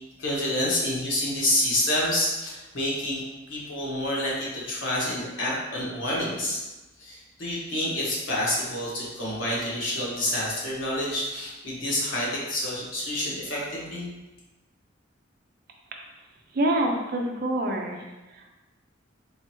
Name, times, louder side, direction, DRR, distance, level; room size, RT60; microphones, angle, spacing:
voice 1, 0.2-3.2 3.5-6.6 7.0-14.1, left 1 dB, 70° left, -6 dB, 1.4 m, -28 dB
voice 2, 16.5-18.0 18.3-18.5, right 1 dB, 50° right, 1 dB, 0.6 m, -26 dB
3.8 x 3.4 x 2.9 m, 1.1 s
head